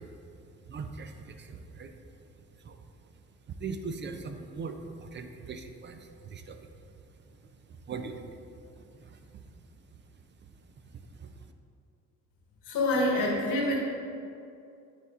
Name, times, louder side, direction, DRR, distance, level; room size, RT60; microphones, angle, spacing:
voice 1, 0.0-2.8 3.1-7.2 7.5-10.0 10.4-11.5, right 4 dB, 40° right, 7 dB, 0.4 m, -43 dB
voice 2, 12.6-13.8, left 1 dB, 85° left, -2 dB, 1.3 m, -26 dB
9.1 x 4.3 x 2.4 m, 2.5 s
cardioid pair, 90°, 30 cm